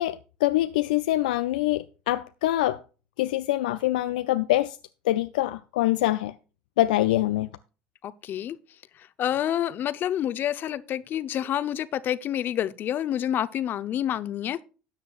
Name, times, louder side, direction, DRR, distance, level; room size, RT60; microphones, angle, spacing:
voice 1, 0.0-2.8 3.2-4.8 5.1-6.3 6.8-7.5, left 15 dB, 80° left, 0.4 m, -24 dB
voice 2, 8.0-8.6 9.2-14.6, left 11 dB, 50° left, 0.7 m, -28 dB
13.0 x 9.2 x 2.4 m
hypercardioid pair, 65°, 4 cm